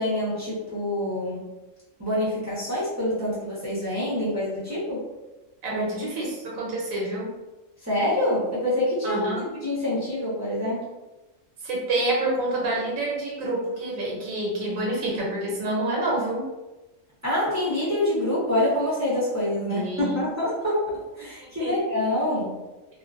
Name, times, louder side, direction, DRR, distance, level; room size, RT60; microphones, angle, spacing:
voice 1, 0.0-1.4 2.0-5.0 5.7-5.9 7.8-10.9 17.2-22.5, left 1 dB, 15° right, -9 dB, 0.6 m, -26 dB
voice 2, 5.6-7.3 9.0-9.4 11.6-16.5 19.7-20.2 21.4-21.8, right 1 dB, 85° right, -3 dB, 1.2 m, -28 dB
2.4 x 2.2 x 2.4 m, 1.1 s
omnidirectional pair, 1.4 m